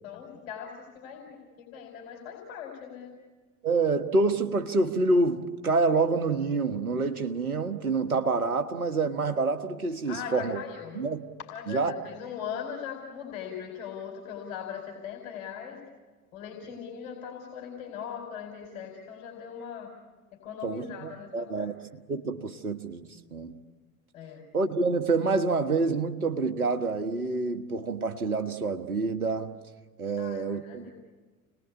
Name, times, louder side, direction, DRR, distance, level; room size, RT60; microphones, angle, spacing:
voice 1, 0.0-3.1 10.1-11.0 11.4-15.8 16.3-19.9 20.4-21.7 24.1-24.5 30.2-30.9, left 8 dB, 65° left, 4.6 m, -40 dB
voice 2, 3.6-10.6 10.9-11.2 11.7-11.9 20.6-21.7 22.1-23.6 24.5-29.5 30.0-30.9, right 3 dB, 90° right, 1.6 m, -27 dB
30.0 x 20.5 x 8.4 m
figure-of-eight pair, 75°, 43 cm